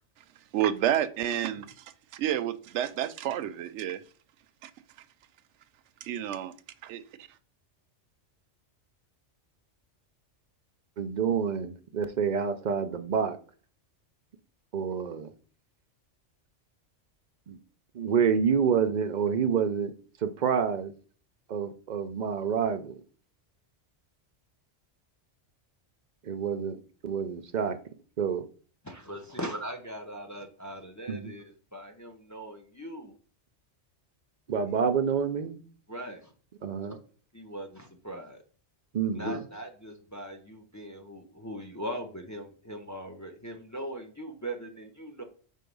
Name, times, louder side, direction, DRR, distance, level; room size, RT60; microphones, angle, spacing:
voice 1, 0.5-1.7 2.1-4.0 4.6-4.7 6.0-6.5 6.8-7.0, right 11 dB, 75° right, 0.9 m, -29 dB
voice 2, 11.0-13.4 14.7-15.3 17.5-17.6 17.9-19.9 20.2-20.9 21.5-23.0 26.2-27.8 28.2-28.4 31.1-31.3 34.5-35.6 36.6-37.0 38.9-39.3, right 7 dB, 50° right, 0.6 m, -28 dB
voice 3, 28.8-33.1 34.7-34.8 35.9-36.3 37.3-38.4 39.1-45.2, equal, 20° left, 0.7 m, -40 dB
4.6 x 4.2 x 5.3 m
omnidirectional pair, 1.2 m